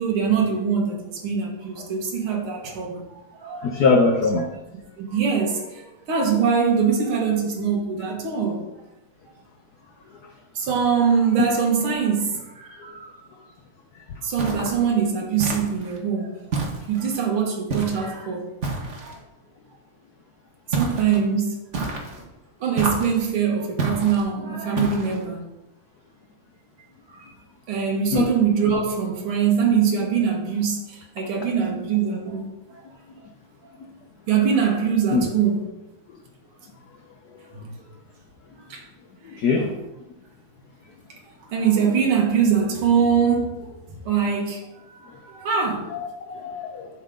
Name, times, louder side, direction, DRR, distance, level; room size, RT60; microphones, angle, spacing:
voice 1, 0.0-4.1 5.0-8.6 10.6-13.1 14.2-16.5 16.9-18.5 19.0-19.2 20.7-21.6 22.6-25.4 27.1-27.3 27.7-32.8 34.3-35.6 37.5-37.7 38.7-38.8 39.2-39.7 41.5-43.7 44.1-45.9, right 6 dB, 75° right, -1 dB, 2.3 m, -23 dB
voice 2, 3.6-4.5 28.1-28.3 31.7-31.8 35.1-35.3 39.4-39.7 45.9-46.9, left 4 dB, 60° left, 3 dB, 1.0 m, -21 dB
sound 1, 14.4-14.8 15.4-16.0 16.5-17.2 17.7-18.1 18.6-19.2 20.7-21.2 21.7-22.2 22.8-23.2 23.8-24.2 24.8-25.2, right 3 dB, 40° right, 1.4 m, -28 dB
11.0 x 5.9 x 3.7 m, 0.96 s
omnidirectional pair, 2.4 m